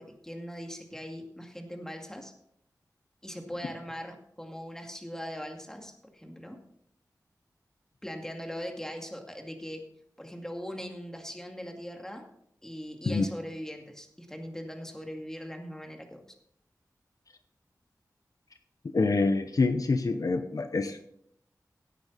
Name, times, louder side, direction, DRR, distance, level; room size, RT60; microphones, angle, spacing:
voice 1, 0.0-2.3 3.2-6.6 8.0-9.9 10.2-12.3 12.6-16.2, equal, 10° left, 3 dB, 2.2 m, -40 dB
voice 2, 18.9-21.0, left 3 dB, 60° left, 8 dB, 0.8 m, -26 dB
16.5 x 8.6 x 4.1 m, 0.70 s
wide cardioid pair, 80°, 7 cm